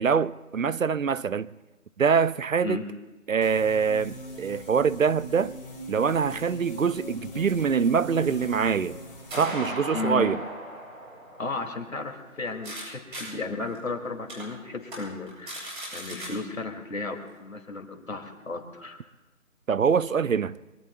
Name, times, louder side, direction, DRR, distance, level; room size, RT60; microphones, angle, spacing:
voice 1, 0.0-1.5 2.0-2.8 3.3-5.5 5.9-9.0 9.4-10.4 19.7-20.5, right 6 dB, 70° right, 0.6 m, -24 dB
sound 1, 3.4-9.3, equal, 40° left, 5.8 m, -41 dB
sound 2, 8.1-12.8 13.1-13.2 13.8-13.9 14.3-14.4 14.8-15.0 15.3-16.3, equal, 40° right, 7.5 m, -38 dB
voice 2, 9.9-10.3 11.4-19.0, left 3 dB, 70° left, 2.5 m, -34 dB
24.0 x 23.0 x 2.3 m
figure-of-eight pair, 170°, 42 cm